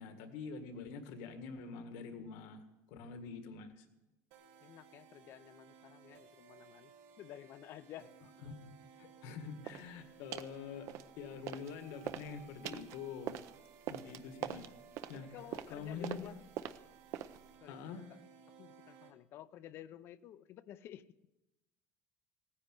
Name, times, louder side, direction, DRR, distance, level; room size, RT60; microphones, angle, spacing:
voice 1, 0.0-3.9 8.4-8.6 9.0-10.9 11.2-13.3 13.9-14.7 15.1-15.3 15.7-16.3 17.7-18.1, left 5 dB, 75° left, 7 dB, 1.8 m, -46 dB
sound 1, 4.3-19.1, right 7 dB, 90° right, 2.0 m, -60 dB
voice 2, 4.6-6.9 7.2-8.1 11.3-11.4 15.1-16.4 17.6-17.8 18.1-18.2 18.6-21.1, left 11 dB, 40° left, 15 dB, 0.6 m, -52 dB
sound 2, 9.6-9.9 10.3-10.6 10.9-11.7 12.0-17.5, right 11 dB, 50° right, 0.6 m, -44 dB
17.5 x 9.9 x 7.7 m, 1.0 s
cardioid pair, 170°, 6 cm